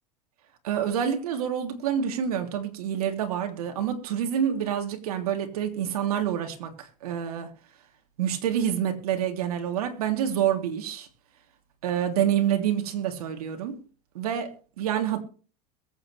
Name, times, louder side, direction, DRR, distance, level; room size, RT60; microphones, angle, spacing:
voice 1, 0.6-7.5 8.2-11.1 11.8-13.8 14.1-14.5 14.8-15.2, right 9 dB, 85° right, 3.2 m, -27 dB
22.5 x 8.7 x 3.4 m
supercardioid pair, 110°, 19 cm